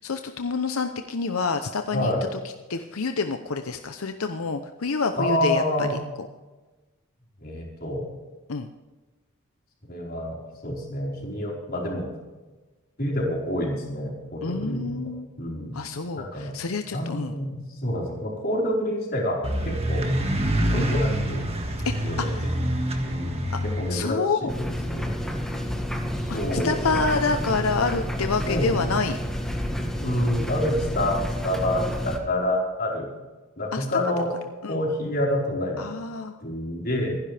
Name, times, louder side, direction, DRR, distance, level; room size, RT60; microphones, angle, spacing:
voice 1, 0.0-2.1 2.7-5.9 8.5-8.7 14.4-15.3 15.7-17.3 20.6-20.8 22.0-22.3 23.5-23.6 23.9-24.5 26.3-29.2 33.7-33.8 34.6-34.8 35.8-36.3, left 4 dB, 85° left, 7 dB, 0.8 m, -28 dB
voice 2, 1.9-2.2 5.2-5.9 7.4-8.1 9.9-10.4 10.6-12.1 13.0-15.1 15.4-15.7 16.1-16.5 16.9-20.1 20.7-21.5 22.0-22.5 23.0-25.1 26.1-27.0 28.5-29.0 30.0-33.1 33.6-34.3 34.7-35.9 36.4-37.2, left 1 dB, 45° left, -3 dB, 4.7 m, -28 dB
sound 1, 19.4-24.0, right 1 dB, 30° right, 1.7 m, -26 dB
sound 2, 24.5-32.2, equal, ahead, 1.6 m, -29 dB
26.5 x 10.5 x 3.5 m, 1.2 s
head